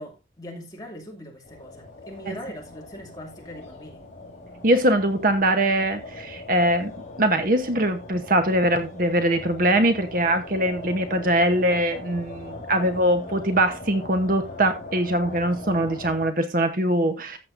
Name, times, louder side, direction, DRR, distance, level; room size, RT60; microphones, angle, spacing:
voice 1, 0.0-4.0, equal, 20° left, 2.4 m, -40 dB
sound 1, 1.4-16.3, left 2 dB, 40° left, 4.3 m, -40 dB
voice 2, 4.6-6.9 7.2-17.4, right 1 dB, 45° right, 1.0 m, -22 dB
13.5 x 7.6 x 2.6 m
head